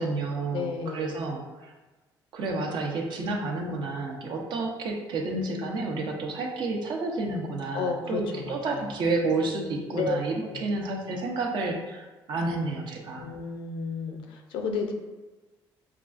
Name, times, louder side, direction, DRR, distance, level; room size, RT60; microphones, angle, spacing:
voice 1, 0.0-1.7 2.3-13.3, right 3 dB, 65° right, 1 dB, 0.7 m, -30 dB
voice 2, 0.5-1.2 7.7-8.9 9.9-10.2 10.5-10.7 13.1-14.9, left 4 dB, 85° left, 4 dB, 0.6 m, -32 dB
5.8 x 2.3 x 2.5 m, 1.2 s
cardioid pair, 115°, 8 cm